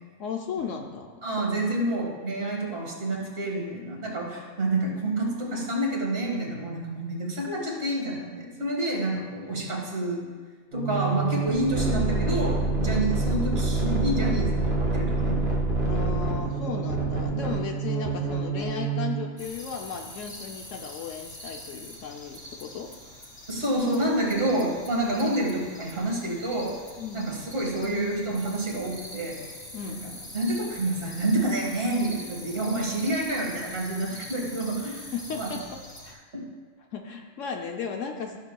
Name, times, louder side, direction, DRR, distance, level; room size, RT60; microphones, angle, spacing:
voice 1, 0.2-1.4 9.4-9.5 12.8-13.1 15.8-22.9 25.0-25.3 27.0-27.2 29.7-30.0 35.1-36.2 36.9-38.4, left 6 dB, 70° left, 3 dB, 0.9 m, -35 dB
voice 2, 1.2-10.3 10.7-15.4 23.5-26.8 27.1-29.4 29.9-35.5 36.3-36.5, right 1 dB, 45° right, -2 dB, 1.9 m, -28 dB
sound 1, 10.7-19.3, right 3 dB, 85° right, 1.8 m, -27 dB
sound 2, 19.4-36.1, left 1 dB, 20° left, 1.4 m, -44 dB
13.5 x 6.7 x 2.3 m, 1.5 s
omnidirectional pair, 1.4 m